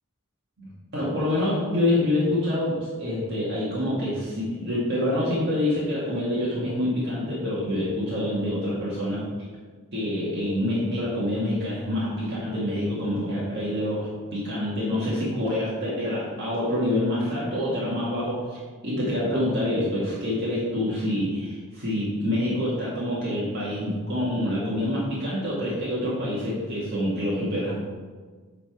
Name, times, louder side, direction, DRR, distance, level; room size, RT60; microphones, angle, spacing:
voice 1, 0.6-9.2 9.9-27.8, left 1 dB, 55° right, -8 dB, 1.9 m, -26 dB
8.4 x 4.1 x 4.8 m, 1.4 s
head